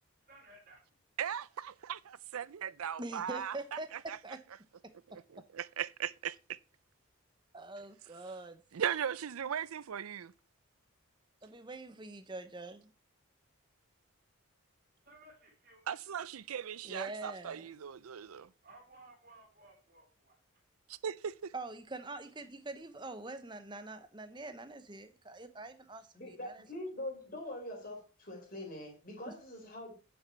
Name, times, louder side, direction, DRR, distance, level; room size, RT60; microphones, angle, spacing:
voice 1, 0.3-0.8 15.1-15.8 18.6-20.4, right 2 dB, 40° right, 3.7 m, -58 dB
voice 2, 1.2-3.6 4.1-4.2 5.1-6.6 8.7-10.3 15.9-18.5 20.9-21.5, right 8 dB, 85° right, 0.5 m, -38 dB
voice 3, 3.0-4.4 7.5-8.6 11.4-12.9 16.8-17.7 21.5-26.6 29.3-29.4, right 2 dB, 20° right, 0.8 m, -44 dB
voice 4, 26.2-29.9, left 1 dB, 40° left, 3.9 m, -43 dB
9.7 x 6.9 x 4.5 m
head